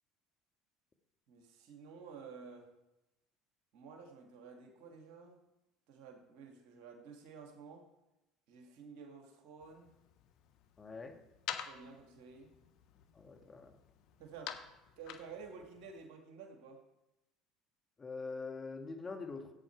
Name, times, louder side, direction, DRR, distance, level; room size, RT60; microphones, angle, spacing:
voice 1, 1.3-2.7 3.7-5.4 5.9-7.9 8.5-9.9 11.6-12.5 14.2-14.6 15.0-16.8, right 5 dB, 65° right, 3 dB, 2.4 m, -52 dB
sound 1, 9.6-16.0, left 9 dB, 65° left, 1.1 m, -49 dB
voice 2, 10.8-11.2 13.2-13.8 18.0-19.5, left 4 dB, 25° left, 5 dB, 1.9 m, -44 dB
16.5 x 8.9 x 4.7 m, 0.95 s
hypercardioid pair, 70°, 0 cm